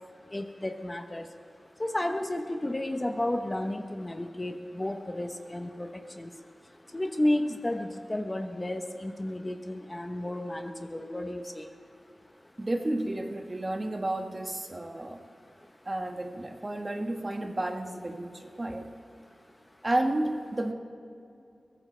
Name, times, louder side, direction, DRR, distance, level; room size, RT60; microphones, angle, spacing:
voice 1, 0.3-1.2 1.8-5.9 6.2-6.3 6.9-11.7, left 1 dB, 20° left, 5 dB, 0.9 m, -32 dB
voice 2, 12.6-15.2 15.8-18.9 19.8-20.7, right 1 dB, 30° right, 4 dB, 1.5 m, -31 dB
22.0 x 17.5 x 3.4 m, 2.5 s
wide cardioid pair, 80°, 0 cm